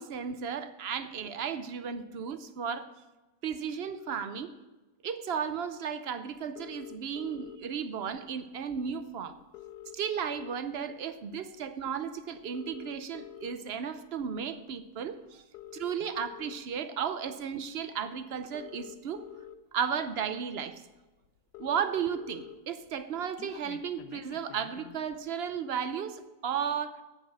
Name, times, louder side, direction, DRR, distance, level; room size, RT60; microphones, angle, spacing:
voice 1, 0.0-2.9 3.4-4.5 5.0-9.4 9.9-15.4 15.7-19.2 19.7-20.8 21.6-27.0, right 7 dB, 55° right, 10 dB, 0.7 m, -34 dB
sound 1, 6.6-7.6 8.7-8.8 9.1-9.2 9.4-10.8 11.3-11.5 12.4-13.5 14.3-14.5 15.4-16.6 17.8-17.9 18.4-19.5 20.2-20.3 20.6-20.7 21.0-21.1 21.2-22.5 22.9-25.0, left 11 dB, 90° left, 1.2 m, -47 dB
8.9 x 8.4 x 6.1 m, 1.1 s
omnidirectional pair, 1.7 m